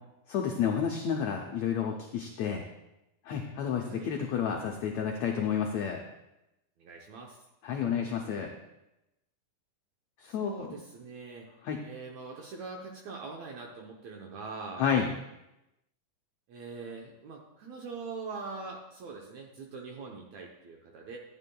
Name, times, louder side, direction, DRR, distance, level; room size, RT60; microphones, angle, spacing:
voice 1, 0.3-2.6 3.3-6.0 7.6-8.5 10.2-10.7 11.6-11.8 14.8-15.1, left 7 dB, 85° left, 2 dB, 1.5 m, -30 dB
voice 2, 6.8-7.4 10.3-11.5 11.8-14.9 16.5-21.2, right 4 dB, 75° right, 0 dB, 1.7 m, -43 dB
14.0 x 9.1 x 2.3 m, 0.92 s
omnidirectional pair, 4.0 m